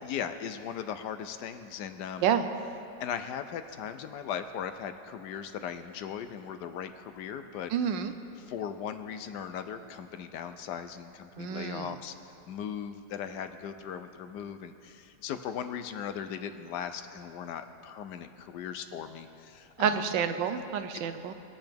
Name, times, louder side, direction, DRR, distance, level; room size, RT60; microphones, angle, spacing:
voice 1, 0.0-2.3 3.0-7.7 8.4-12.1 12.5-20.2, left 8 dB, 75° left, 9 dB, 1.1 m, -38 dB
voice 2, 7.7-8.1 11.4-11.9 19.8-21.3, right 8 dB, 90° right, 9 dB, 1.4 m, -29 dB
21.5 x 7.8 x 3.5 m, 2.7 s
omnidirectional pair, 1.9 m